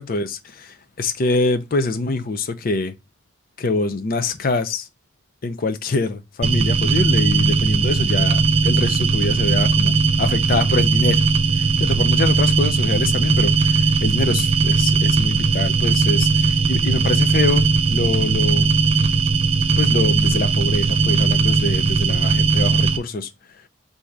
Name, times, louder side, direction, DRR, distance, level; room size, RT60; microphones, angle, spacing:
voice 1, 0.0-2.9 3.6-4.9 5.4-11.2 11.6-18.7 19.8-23.3, left 3 dB, 45° left, 0.5 m, -25 dB
sound 1, 6.4-23.0, right 4 dB, 30° right, 0.4 m, -18 dB
3.6 x 2.7 x 4.5 m
head